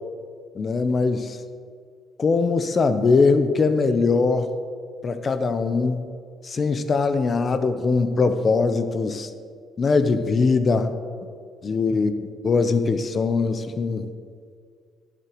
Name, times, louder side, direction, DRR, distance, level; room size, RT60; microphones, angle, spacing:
voice 1, 0.5-1.4 2.2-4.5 5.0-6.1 6.4-9.3 9.8-11.0 11.6-12.1 12.4-14.1, left 4 dB, 35° left, 10 dB, 0.7 m, -21 dB
14.0 x 11.0 x 3.1 m, 2.1 s
cardioid pair, 115°, 0 cm